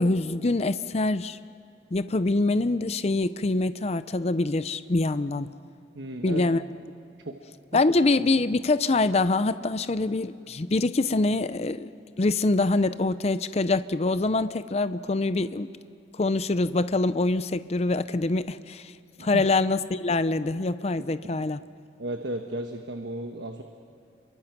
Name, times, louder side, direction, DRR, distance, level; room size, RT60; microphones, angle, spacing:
voice 1, 0.0-1.4 1.9-5.5 6.2-6.6 7.7-11.9 12.2-15.7 16.2-18.9 19.2-21.6, left 2 dB, 35° left, 13 dB, 0.5 m, -25 dB
voice 2, 5.9-6.4 7.2-7.4 7.7-7.8 19.2-19.4 22.0-23.6, right 1 dB, 80° right, 5 dB, 1.3 m, -34 dB
29.5 x 23.0 x 6.0 m, 2.6 s
head